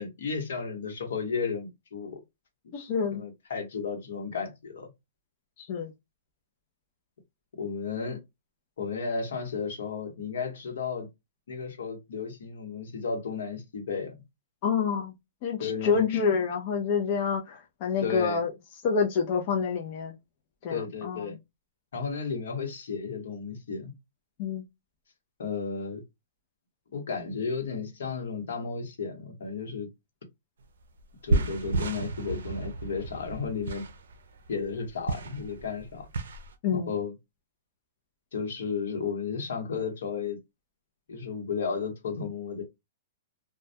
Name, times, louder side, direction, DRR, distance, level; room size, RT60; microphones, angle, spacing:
voice 1, 0.0-2.2 2.6-2.7 3.1-4.9 7.6-8.2 8.8-11.1 11.5-14.1 15.6-16.1 18.0-18.4 20.7-21.4 21.9-23.9 25.4-26.0 26.9-29.9 31.2-33.8 34.5-36.1 36.7-37.1 38.3-40.4 41.1-42.6, left 5 dB, 80° left, 1.0 m, -33 dB
voice 2, 2.7-3.2 5.6-5.9 14.6-15.1 15.4-18.5 18.8-20.1 20.6-21.3 24.4-24.6 36.6-36.9, left 6 dB, 40° left, 0.4 m, -27 dB
sound 1, 30.6-30.7 31.0-36.5, right 3 dB, 90° right, 0.4 m, -32 dB
2.2 x 2.1 x 2.6 m
hypercardioid pair, 155°, 0 cm